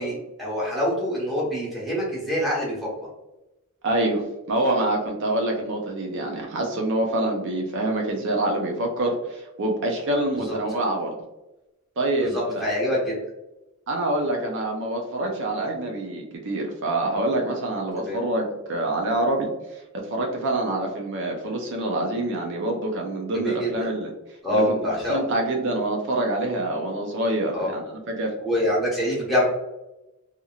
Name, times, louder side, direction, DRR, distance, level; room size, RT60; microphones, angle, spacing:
voice 1, 0.0-2.9 10.3-10.6 12.2-13.1 18.0-18.2 23.3-23.9 24.4-25.2 27.5-27.7 28.4-29.4, equal, ahead, -6 dB, 1.1 m, -25 dB
voice 2, 3.8-11.1 12.0-12.6 13.9-24.1 24.5-28.3, right 1 dB, 55° right, 1 dB, 0.5 m, -26 dB
2.8 x 2.7 x 2.3 m, 0.98 s
head